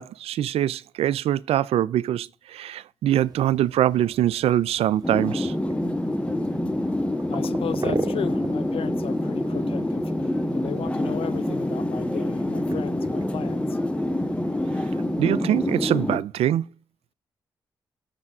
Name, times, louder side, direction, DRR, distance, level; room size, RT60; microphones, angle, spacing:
voice 1, 0.0-5.5 15.2-16.6, right 12 dB, 75° right, 0.4 m, -23 dB
sound 1, 3.1-16.0, right 3 dB, 40° right, 1.3 m, -40 dB
sound 2, 5.0-16.2, left 1 dB, 10° left, 0.9 m, -26 dB
voice 2, 7.3-10.1 10.5-13.8, left 8 dB, 65° left, 0.5 m, -35 dB
7.3 x 6.8 x 4.9 m
supercardioid pair, 45°, 10 cm